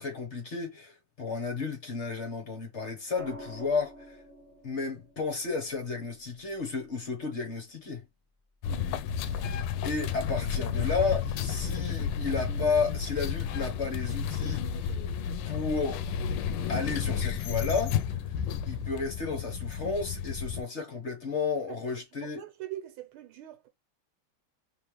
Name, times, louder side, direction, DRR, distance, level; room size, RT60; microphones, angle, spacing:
voice 1, 0.0-4.2 4.6-8.0 9.3-9.6 9.8-15.0 15.5-16.1 16.7-18.0 18.7-22.4, left 4 dB, 45° left, 1.0 m, -32 dB
sound 1, 3.2-7.3 9.0-9.4, equal, 20° right, 1.3 m, -49 dB
sound 2, 8.6-20.6, left 7 dB, 85° left, 1.4 m, -32 dB
voice 2, 22.2-23.7, right 13 dB, 80° right, 1.8 m, -42 dB
3.4 x 3.2 x 3.1 m
omnidirectional pair, 2.3 m